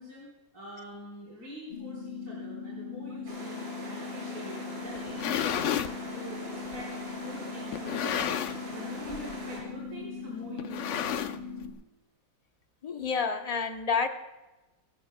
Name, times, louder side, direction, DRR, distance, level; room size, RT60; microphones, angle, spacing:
voice 1, 0.0-5.8 6.1-8.4 8.6-11.2, equal, 50° right, -7 dB, 4.7 m, -45 dB
sound 1, 1.7-11.7, left 5 dB, 65° left, 2.6 m, -40 dB
sound 2, 3.3-9.6, right 1 dB, 75° right, 5.3 m, -42 dB
sound 3, 4.9-6.0 6.7-6.8 7.7-8.7 9.0-9.3 9.6-9.7 10.6-11.7, left 9 dB, 85° left, 0.6 m, -31 dB
voice 2, 12.8-14.1, left 5 dB, 40° left, 6 dB, 0.6 m, -29 dB
28.5 x 16.0 x 2.2 m, 1.1 s
omnidirectional pair, 2.0 m